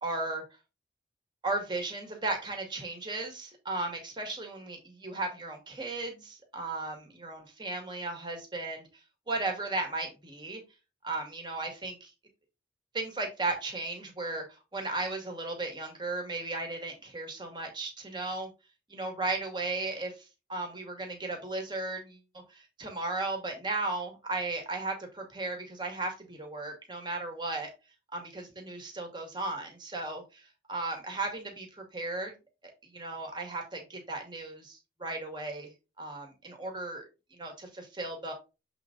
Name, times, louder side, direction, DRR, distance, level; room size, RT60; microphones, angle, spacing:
voice 1, 0.0-0.4 1.4-8.8 9.3-10.6 11.0-12.1 12.9-14.4 14.7-18.5 18.9-22.2 22.5-27.7 28.1-32.3 32.6-35.7 36.0-37.0 37.3-38.3, right 2 dB, 25° right, 3 dB, 2.1 m, -35 dB
7.7 x 4.0 x 3.8 m, 0.27 s
head